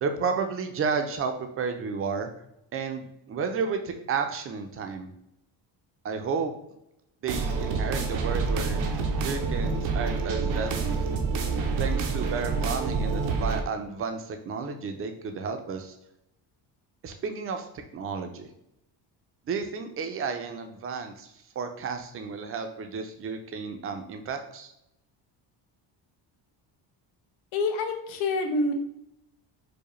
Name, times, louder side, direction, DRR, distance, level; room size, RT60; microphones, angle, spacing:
voice 1, 0.0-2.3 2.7-5.1 6.0-6.5 7.2-8.8 9.2-11.0 11.8-16.0 17.0-18.5 19.5-21.3 21.6-24.7, right 5 dB, 30° right, 6 dB, 0.4 m, -32 dB
sound 1, 7.3-13.6, right 4 dB, 85° right, 0.7 m, -27 dB
voice 2, 27.5-28.7, left 2 dB, 90° left, 4 dB, 0.7 m, -27 dB
4.7 x 2.1 x 3.0 m, 0.82 s
cardioid pair, 125°, 45 cm